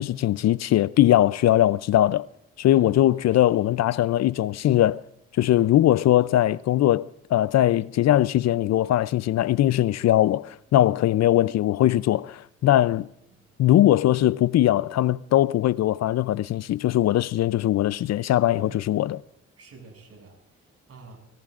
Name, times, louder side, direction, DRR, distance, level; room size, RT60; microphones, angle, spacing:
voice 1, 0.0-2.3 2.6-5.0 5.3-13.1 13.6-19.2, left 13 dB, 60° left, 0.5 m, -21 dB
voice 2, 2.6-3.0 3.2-3.9 5.4-5.7 13.3-13.4 18.6-18.9 19.6-21.2, right 4 dB, 55° right, 6.6 m, -46 dB
27.5 x 18.0 x 2.5 m
cardioid pair, 90°, 30 cm